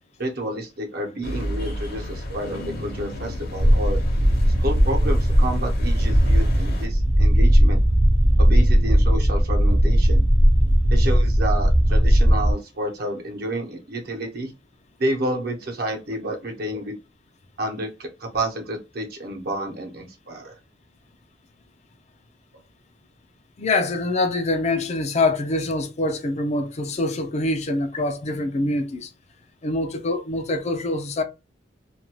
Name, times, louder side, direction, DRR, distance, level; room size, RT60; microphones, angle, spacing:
voice 1, 0.2-4.0 4.6-7.8 8.4-10.3 10.9-14.5 15.0-17.0 17.6-20.5, right 1 dB, 60° right, 0.9 m, -30 dB
sound 1, 1.2-6.9, equal, 55° left, 0.9 m, -33 dB
sound 2, 3.6-12.5, equal, 20° right, 0.5 m, -17 dB
voice 2, 23.6-29.1 29.6-31.2, left 2 dB, 40° left, 0.5 m, -25 dB
2.6 x 2.3 x 2.9 m
head